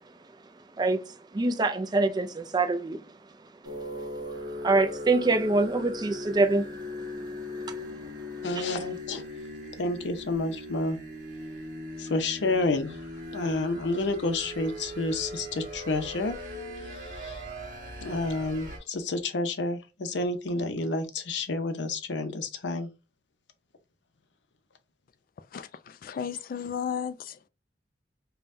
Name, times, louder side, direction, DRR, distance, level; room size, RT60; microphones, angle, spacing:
voice 1, 0.8-1.1 1.3-3.0 4.6-6.7 8.6-8.7, right 3 dB, 25° right, 0.4 m, -25 dB
sound 1, 3.6-18.8, left 1 dB, 50° right, 1.3 m, -39 dB
voice 2, 8.4-9.2 9.8-11.0 12.0-13.0 13.3-16.4 17.2-17.4 18.0-22.9, left 2 dB, 85° left, 0.7 m, -29 dB
voice 3, 25.5-27.4, left 7 dB, 50° left, 0.3 m, -34 dB
5.4 x 2.2 x 2.6 m
head